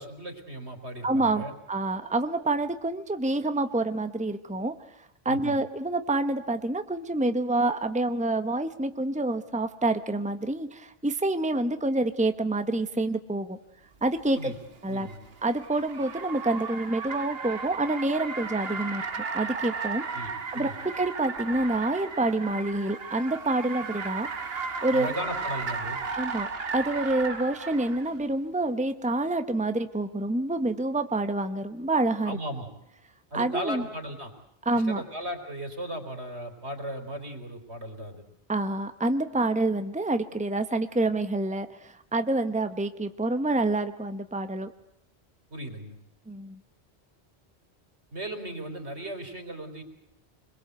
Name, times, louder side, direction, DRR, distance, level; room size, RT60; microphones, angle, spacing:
voice 1, 0.0-1.5 5.3-5.6 14.4-14.6 14.9-15.2 20.1-20.8 24.9-26.0 32.2-32.7 33.3-34.3 34.7-38.2 45.5-46.0 48.1-49.8, right 1 dB, 75° right, 6 dB, 4.3 m, -36 dB
voice 2, 1.0-4.7 5.2-13.6 14.0-14.5 14.8-15.1 15.4-19.0 19.3-20.0 20.5-20.7 21.0-24.3 24.8-25.1 26.1-32.4 33.3-33.8 34.6-35.0 38.5-44.7 46.3-46.6, right 2 dB, 5° right, 9 dB, 1.1 m, -27 dB
Car, 14.2-28.1, right 5 dB, 60° right, 1.6 m, -35 dB
26.0 x 22.0 x 8.1 m, 0.81 s
omnidirectional pair, 1.1 m